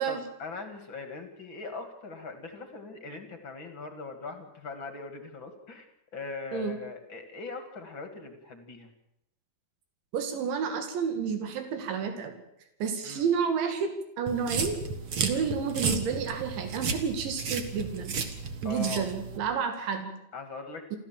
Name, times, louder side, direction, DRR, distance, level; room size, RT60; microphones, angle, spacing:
voice 1, 0.0-5.9 6.1-8.9 13.0-13.3 15.3-15.5 18.6-19.2 20.3-20.8, left 4 dB, 40° left, 7 dB, 1.8 m, -41 dB
voice 2, 10.1-12.4 12.8-14.8 15.2-18.2 18.6-20.1, right 6 dB, 90° right, 6 dB, 4.7 m, -30 dB
sound 1, 14.3-19.4, right 5 dB, 50° right, 1.6 m, -33 dB
27.0 x 14.5 x 7.4 m, 0.82 s
omnidirectional pair, 5.1 m